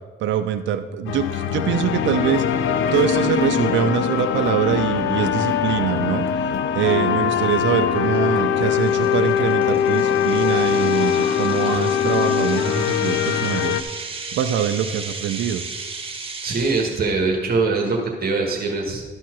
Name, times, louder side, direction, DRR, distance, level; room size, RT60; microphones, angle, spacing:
voice 1, 0.2-2.4 2.9-6.3 6.7-15.6, right 9 dB, 70° right, 8 dB, 0.5 m, -23 dB
sound 1, 1.1-13.8, left 9 dB, 80° left, 0.6 m, -22 dB
sound 2, 6.9-7.0 7.5-7.7 8.1-8.2 8.8-17.1, right 4 dB, 30° right, 1.4 m, -35 dB
voice 2, 16.4-19.0, right 3 dB, 50° right, 0 dB, 1.5 m, -22 dB
12.5 x 4.5 x 6.1 m, 1.4 s
cardioid pair, 90°, 20 cm